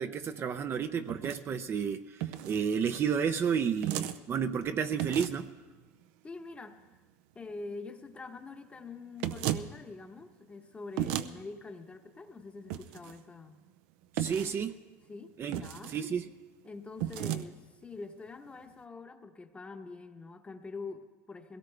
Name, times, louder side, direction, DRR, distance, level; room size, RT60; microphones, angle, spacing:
voice 1, 0.0-5.5 14.1-14.7 15.4-15.6 15.9-16.2, right 7 dB, 35° right, 9 dB, 0.6 m, -31 dB
sound 1, 1.1-1.4 2.2-2.6 3.8-4.2 5.0-5.5 9.2-9.7 11.0-11.3 12.7-13.1 14.2-14.6 15.5-16.1 17.0-17.4, right 12 dB, 80° right, 0.6 m, -34 dB
voice 2, 6.2-6.9 7.3-13.6 14.2-14.4 15.1-15.9 16.6-21.6, left 3 dB, 15° left, 6 dB, 1.0 m, -45 dB
21.5 x 17.0 x 3.4 m, 1.3 s
supercardioid pair, 120°, 7 cm